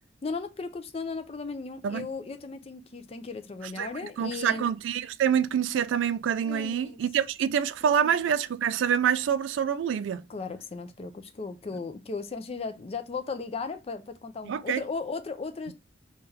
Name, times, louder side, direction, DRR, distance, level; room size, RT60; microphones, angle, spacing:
voice 1, 0.2-4.7 6.4-7.0 8.0-8.1 10.3-15.7, left 4 dB, 30° left, 0.4 m, -36 dB
voice 2, 4.2-10.2 14.4-14.8, right 8 dB, 75° right, 0.3 m, -26 dB
3.3 x 2.3 x 4.1 m
head